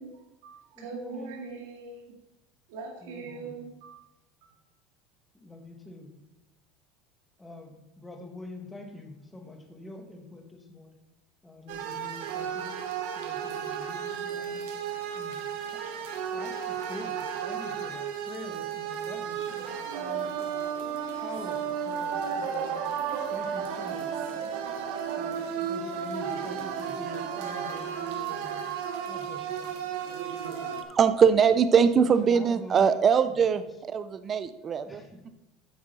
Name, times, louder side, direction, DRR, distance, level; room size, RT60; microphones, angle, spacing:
voice 1, 0.0-2.0 2.7-4.1 4.4-4.5, right 4 dB, 80° right, 2 dB, 1.9 m, -42 dB
voice 2, 0.8-1.4 3.0-3.6 5.3-6.2 7.4-11.0 11.4-12.8 13.1-14.6 15.1-15.8 16.3-20.6 21.2-22.7 23.3-24.4 25.2-28.7 29.0-30.0 31.9-32.9 34.7-35.2, left 2 dB, 5° left, 4 dB, 1.0 m, -45 dB
sound 1, 11.7-30.8, right 8 dB, 60° right, 0.9 m, -33 dB
voice 3, 30.9-35.0, right 6 dB, 20° right, 12 dB, 0.3 m, -22 dB
8.8 x 7.3 x 4.1 m, 0.93 s
cardioid pair, 180°, 0 cm